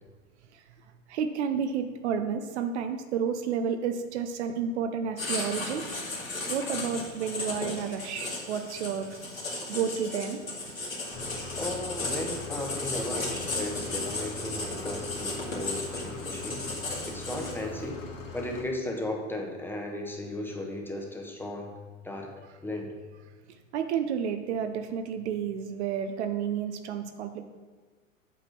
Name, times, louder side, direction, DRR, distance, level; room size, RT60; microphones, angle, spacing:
voice 1, 1.1-5.8 6.5-9.2 9.4-10.4 23.7-27.4, right 7 dB, 55° right, 7 dB, 0.8 m, -31 dB
Writing, 5.2-17.8, left 2 dB, 85° left, 2.3 m, -35 dB
sound 1, 11.1-18.6, left 3 dB, 65° left, 1.7 m, -42 dB
voice 2, 11.6-16.7 17.0-18.0 18.3-21.7 22.0-22.3 22.6-22.9, left 1 dB, 5° left, 1 dB, 1.1 m, -35 dB
8.1 x 4.2 x 6.0 m, 1.4 s
figure-of-eight pair, 100°, 40 cm